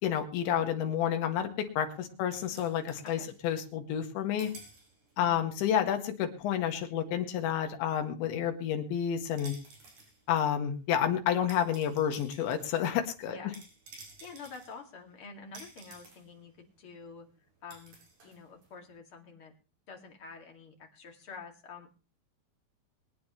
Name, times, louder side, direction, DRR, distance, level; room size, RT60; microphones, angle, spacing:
voice 1, 0.0-4.5 5.2-9.6 10.3-13.4, left 9 dB, 80° left, 6 dB, 4.0 m, -30 dB
sound 1, 1.2-4.1 4.4-5.4 5.6-19.0, right 3 dB, 45° right, 5.8 m, -54 dB
voice 2, 14.2-17.3 17.6-18.0 18.2-19.5 19.9-21.9, left 4 dB, 40° left, 3 dB, 2.4 m, -48 dB
23.0 x 9.7 x 3.2 m, 0.33 s
omnidirectional pair, 5.3 m